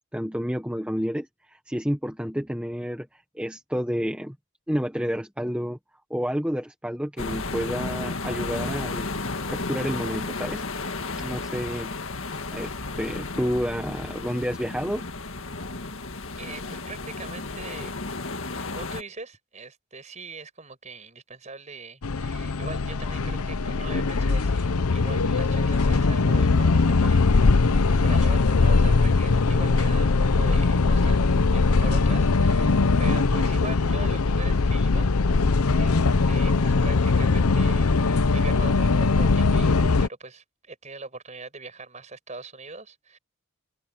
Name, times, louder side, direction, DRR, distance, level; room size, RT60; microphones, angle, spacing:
voice 1, 0.1-4.3 4.7-5.8 6.1-9.1 9.5-10.6 11.2-11.9 12.5-15.1, equal, 5° right, 1.3 m, -30 dB
sound 1, 7.2-19.0, left 3 dB, 60° left, 1.9 m, -33 dB
voice 2, 16.4-18.0 18.5-31.2 31.5-35.1 35.8-36.0 36.2-43.2, right 3 dB, 30° right, 5.9 m, -41 dB
sound 2, 22.0-40.1, left 3 dB, 80° left, 0.8 m, -21 dB
head